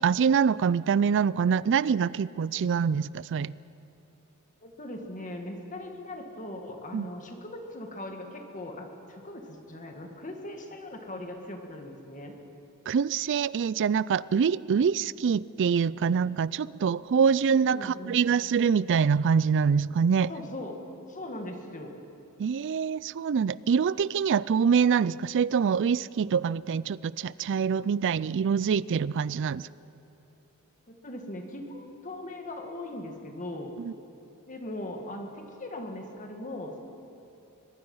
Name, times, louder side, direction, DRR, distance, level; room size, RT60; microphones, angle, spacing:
voice 1, 0.0-3.5 6.9-7.1 12.9-20.3 22.4-29.7 33.8-33.9, right 6 dB, 55° right, 20 dB, 0.4 m, -25 dB
voice 2, 4.6-12.4 17.7-18.2 20.3-20.8 21.1-21.9 30.9-33.7 34.5-36.8, left 1 dB, 35° left, 3 dB, 2.0 m, -39 dB
23.5 x 21.5 x 5.6 m, 2.8 s
head